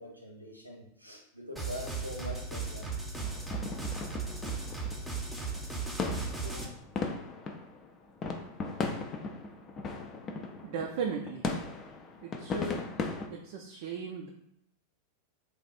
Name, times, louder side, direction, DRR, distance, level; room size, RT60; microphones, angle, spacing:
voice 1, 0.0-3.0 6.4-6.8, left 1 dB, 90° right, 0 dB, 0.7 m, -44 dB
sound 1, 1.6-6.6, right 4 dB, ahead, 0.7 m, -36 dB
sound 2, 3.2-13.3, left 4 dB, 25° left, 0.5 m, -37 dB
voice 2, 10.6-11.4 12.2-12.8 13.3-14.3, right 5 dB, 50° right, 1 dB, 0.4 m, -36 dB
3.4 x 2.4 x 4.1 m, 0.76 s
figure-of-eight pair, 90°, 0 cm